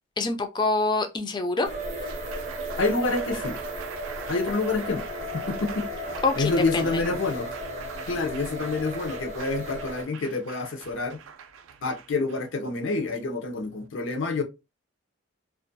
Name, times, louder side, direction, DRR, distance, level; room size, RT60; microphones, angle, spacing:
voice 1, 0.2-1.7 6.2-7.0, left 3 dB, 20° left, 0.3 m, -26 dB
sound 1, 1.6-10.0, equal, 35° right, 0.6 m, -35 dB
Applause, 1.7-13.9, right 6 dB, 85° right, 0.3 m, -43 dB
voice 2, 2.8-3.6 4.3-5.0 5.5-5.9 6.4-7.5 8.1-11.2 11.8-14.4, left 3 dB, 75° left, 0.6 m, -27 dB
2.4 x 2.2 x 2.6 m
head